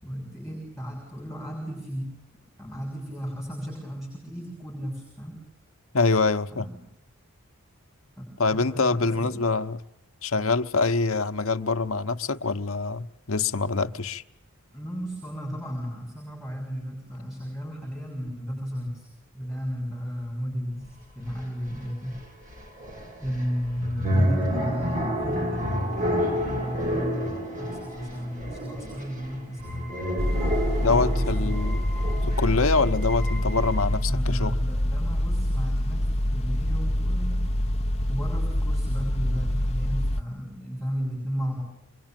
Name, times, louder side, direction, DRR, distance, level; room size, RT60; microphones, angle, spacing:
voice 1, 0.0-2.1 2.6-5.4 6.5-6.8 8.2-9.4 14.7-19.1 19.3-22.2 23.2-30.0 30.2-31.5 34.1-37.5 38.1-41.6, equal, ahead, 6.8 m, -34 dB
voice 2, 5.9-6.7 8.4-9.8 10.2-14.2 30.8-31.8 32.2-34.5, left 3 dB, 70° left, 1.1 m, -25 dB
sound 1, 20.9-21.0 21.3-34.0, equal, 35° right, 7.0 m, -30 dB
sound 2, 30.2-40.2, left 1 dB, 30° left, 1.0 m, -26 dB
26.5 x 23.0 x 9.1 m
head